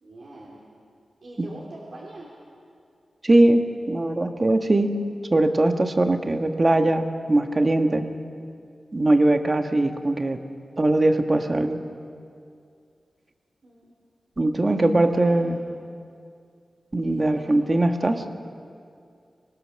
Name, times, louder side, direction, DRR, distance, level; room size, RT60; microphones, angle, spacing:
voice 1, 0.0-0.7 1.2-2.3 13.6-13.9 15.1-15.6 17.0-17.6, right 2 dB, 60° right, -4 dB, 3.1 m, -43 dB
voice 2, 3.2-5.0 5.3-8.1 8.9-10.4 10.8-11.8 14.4-15.6 16.9-18.2, right 2 dB, 30° right, 6 dB, 1.4 m, -21 dB
24.5 x 19.0 x 6.5 m, 2.3 s
wide cardioid pair, 95°, 0 cm